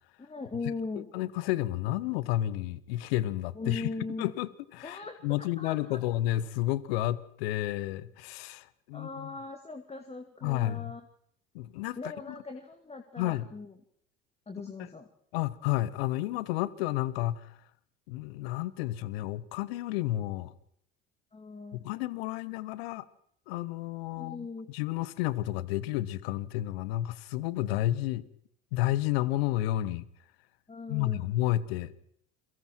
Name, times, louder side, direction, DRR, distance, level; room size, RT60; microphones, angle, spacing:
voice 1, 0.2-1.1 3.5-4.3 4.8-6.0 8.9-11.0 12.0-13.7 14.5-15.1 21.3-21.9 24.1-24.7 30.7-31.3, left 3 dB, 20° left, 2.3 m, -40 dB
voice 2, 1.0-3.9 4.2-9.3 10.4-10.9 11.5-12.0 13.2-13.5 14.8-14.9 15.3-17.5 18.1-20.5 21.8-23.0 23.5-28.2 28.7-30.0 30.9-31.9, left 15 dB, 75° left, 1.2 m, -31 dB
29.0 x 23.0 x 4.6 m
hypercardioid pair, 65°, 31 cm